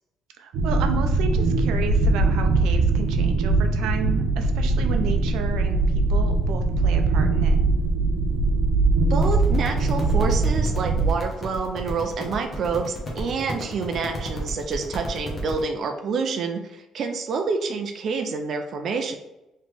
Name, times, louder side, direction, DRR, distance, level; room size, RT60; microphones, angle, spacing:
voice 1, 0.4-7.6, right 6 dB, 85° right, 6 dB, 0.5 m, -32 dB
sound 1, 0.5-11.1, right 3 dB, 65° right, 0.9 m, -21 dB
voice 2, 9.1-19.2, right 4 dB, 40° right, 4 dB, 0.4 m, -28 dB
sound 2, 9.2-15.6, equal, 20° left, 0.9 m, -34 dB
4.1 x 3.1 x 3.2 m, 0.95 s
cardioid pair, 180°, 0 cm